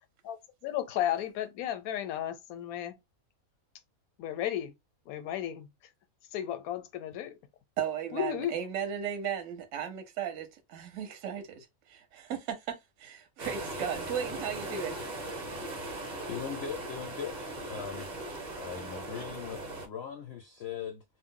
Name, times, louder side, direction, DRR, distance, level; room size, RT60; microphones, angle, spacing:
voice 1, 0.6-3.0 4.2-4.7 5.1-5.7 6.3-7.4 8.1-8.5, left 11 dB, 85° left, 1.0 m, -33 dB
voice 2, 7.8-11.6 11.9-15.0, right 8 dB, 65° right, 0.9 m, -36 dB
sound 1, 13.4-19.9, right 2 dB, 40° right, 0.7 m, -39 dB
voice 3, 16.3-18.1 18.5-21.0, left 8 dB, 65° left, 0.6 m, -40 dB
2.5 x 2.0 x 3.6 m
omnidirectional pair, 1.5 m